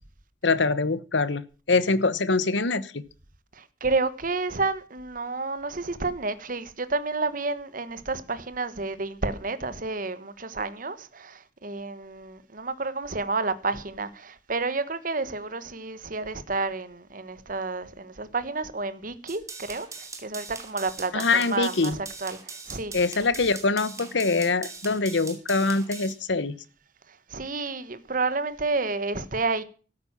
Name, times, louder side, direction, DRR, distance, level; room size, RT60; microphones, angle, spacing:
voice 1, 0.4-3.0 21.1-22.0 22.9-26.5, left 3 dB, 75° left, 1.0 m, -24 dB
voice 2, 3.6-22.4 22.7-22.9 27.3-29.6, right 3 dB, 45° right, 1.2 m, -30 dB
sound 1, 19.3-26.1, right 4 dB, 15° right, 2.7 m, -41 dB
13.5 x 9.6 x 7.4 m
head